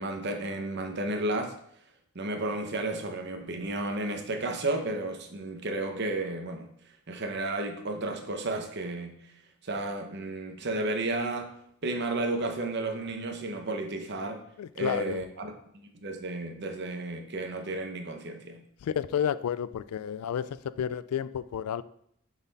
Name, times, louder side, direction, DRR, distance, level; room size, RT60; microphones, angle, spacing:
voice 1, 0.0-1.5 2.1-6.7 7.1-9.3 9.6-11.5 11.8-14.4 14.7-18.6, right 2 dB, 50° right, 0.9 m, -32 dB
voice 2, 14.6-15.2 18.8-21.8, left 8 dB, 85° left, 0.3 m, -31 dB
7.0 x 4.1 x 4.0 m
head